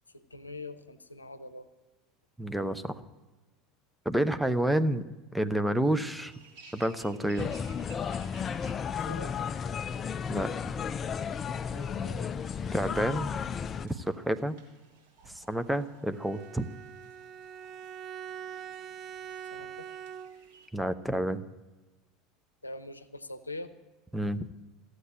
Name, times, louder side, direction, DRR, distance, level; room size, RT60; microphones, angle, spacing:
voice 1, 0.1-1.7 9.0-9.3 11.7-12.3 19.4-19.9 22.6-23.7, left 2 dB, 85° left, 11 dB, 0.7 m, -43 dB
voice 2, 2.4-3.0 4.0-5.0 5.3-6.3 6.7-7.5 10.3-10.5 12.7-13.3 13.8-14.6 15.3-16.7 20.7-21.4 24.1-24.5, right 1 dB, 5° right, 9 dB, 0.7 m, -29 dB
sound 1, 5.8-20.7, right 4 dB, 55° right, 3.4 m, -58 dB
sound 2, 7.4-13.9, left 7 dB, 30° left, 0.4 m, -33 dB
Bowed string instrument, 16.1-20.6, right 8 dB, 40° right, 0.4 m, -43 dB
15.0 x 8.0 x 8.9 m, 1.2 s
figure-of-eight pair, 75°, 0 cm